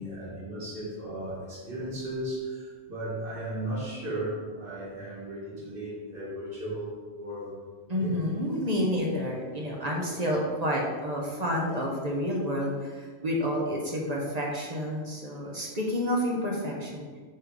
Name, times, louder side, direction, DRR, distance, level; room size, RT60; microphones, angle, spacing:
voice 1, 0.0-7.5 8.0-8.2 15.4-15.5 16.8-16.9, right 1 dB, 55° right, -7 dB, 1.9 m, -36 dB
voice 2, 7.9-17.1, equal, 40° right, -2 dB, 1.1 m, -29 dB
4.8 x 4.3 x 5.2 m, 1.4 s
omnidirectional pair, 1.1 m